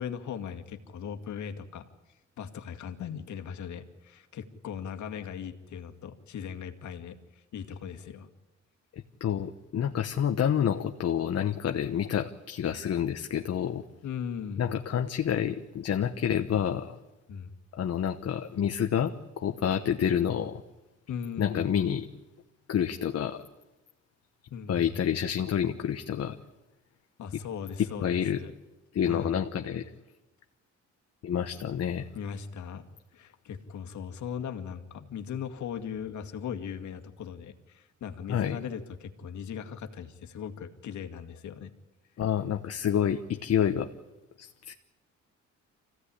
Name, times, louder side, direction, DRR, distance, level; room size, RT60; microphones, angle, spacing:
voice 1, 0.0-1.9 2.4-8.3 14.0-14.8 17.3-17.5 21.1-21.7 24.5-24.9 27.2-28.5 29.1-29.4 32.1-32.9 33.1-41.7, left 7 dB, 70° left, 7 dB, 2.1 m, -38 dB
voice 2, 8.9-13.8 14.6-17.0 17.8-20.6 21.4-22.1 22.7-23.4 24.7-26.4 28.0-28.4 28.9-29.9 31.2-32.1 38.3-38.6 42.2-43.9 44.4-44.7, left 9 dB, 55° left, 6 dB, 1.2 m, -28 dB
25.5 x 16.5 x 10.0 m, 1.1 s
cardioid pair, 90°, 30 cm